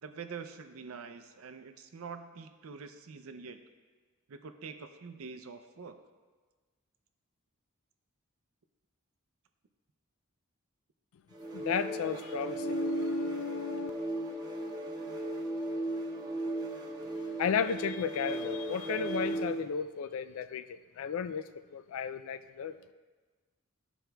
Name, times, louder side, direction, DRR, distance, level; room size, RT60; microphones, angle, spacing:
voice 1, 0.0-3.6 4.3-6.0, right 5 dB, 75° right, 8 dB, 0.5 m, -45 dB
sound 1, 11.3-19.7, right 2 dB, 20° right, 0.5 m, -36 dB
voice 2, 11.5-13.9 17.4-22.7, left 7 dB, 75° left, 11 dB, 0.3 m, -34 dB
13.0 x 4.5 x 2.3 m, 1.4 s
head